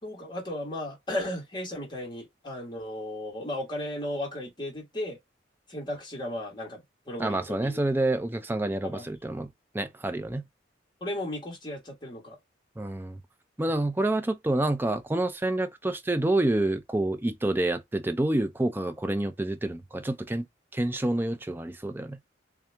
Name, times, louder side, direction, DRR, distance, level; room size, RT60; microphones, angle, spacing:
voice 1, 0.0-5.2 5.7-7.8 8.8-9.1 11.0-12.4, left 1 dB, 25° left, 1.5 m, -35 dB
voice 2, 7.2-10.4 12.8-13.2 13.6-20.5 20.7-22.2, right 1 dB, 10° right, 0.4 m, -28 dB
3.6 x 2.8 x 3.3 m
head